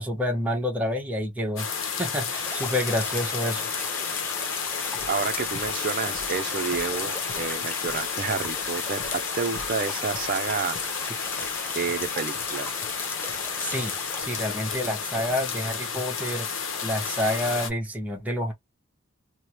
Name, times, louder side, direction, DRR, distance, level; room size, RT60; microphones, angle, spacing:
voice 1, 0.0-1.7 2.0-3.6 13.6-13.9 14.2-18.5, left 1 dB, 10° right, 1.0 m, -28 dB
sound 1, 1.6-17.7, left 6 dB, 85° left, 0.8 m, -31 dB
sound 2, 2.3-14.2, left 2 dB, 10° left, 0.5 m, -38 dB
sound 3, 4.4-4.6 4.8-16.2, left 1 dB, 55° left, 1.0 m, -47 dB
voice 2, 5.1-9.0 9.4-10.8 11.7-12.7, right 5 dB, 45° right, 0.5 m, -29 dB
3.2 x 2.1 x 2.9 m
head